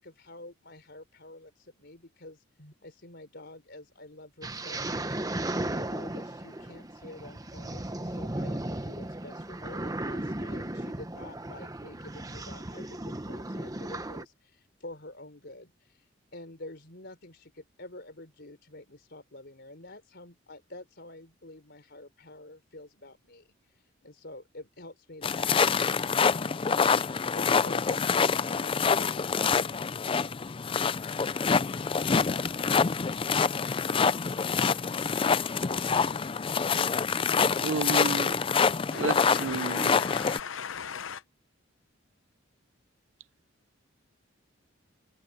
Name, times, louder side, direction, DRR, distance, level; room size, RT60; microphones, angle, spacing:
voice 1, 0.0-26.8 27.3-29.4, left 2 dB, 55° left, 4.4 m, -48 dB
sound 1, 4.4-14.3, right 1 dB, 20° right, 1.0 m, -35 dB
sound 2, 25.2-40.4, left 5 dB, 25° left, 0.4 m, -26 dB
voice 2, 37.6-38.4 38.9-40.0, right 4 dB, 75° right, 0.7 m, -32 dB
voice 3, 38.9-41.2, left 7 dB, 80° left, 0.8 m, -37 dB
head